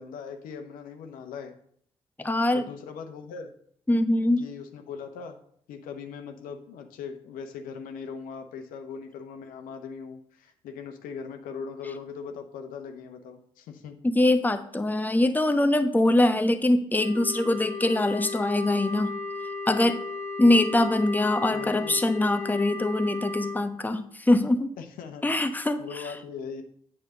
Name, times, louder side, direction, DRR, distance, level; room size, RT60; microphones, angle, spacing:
voice 1, 0.0-1.5 2.5-3.5 4.4-5.4 5.7-14.0 21.5-22.0 24.8-25.2 25.8-26.6, left 6 dB, 70° left, 6 dB, 1.0 m, -40 dB
voice 2, 2.2-2.6 3.9-4.5 14.0-19.1 19.7-20.0 20.4-24.7 25.2-25.8, left 1 dB, 10° left, 8 dB, 1.0 m, -23 dB
Wind instrument woodwind instrument, 16.9-23.6, left 4 dB, 50° left, 1.6 m, -35 dB
8.8 x 4.4 x 6.4 m, 0.63 s
hypercardioid pair, 40°, 15 cm